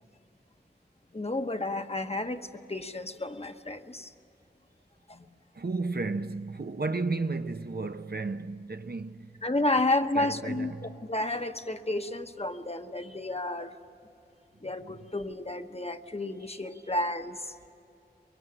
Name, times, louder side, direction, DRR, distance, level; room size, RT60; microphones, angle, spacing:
voice 1, 1.1-2.4 2.7-4.1 5.1-5.2 9.4-13.8 14.6-17.5, left 2 dB, 35° left, 1.1 m, -31 dB
voice 2, 5.5-9.4 10.1-10.9 14.6-15.1 16.5-16.6, right 3 dB, 65° right, 0.7 m, -33 dB
23.0 x 23.0 x 9.0 m
wide cardioid pair, 40°, 18 cm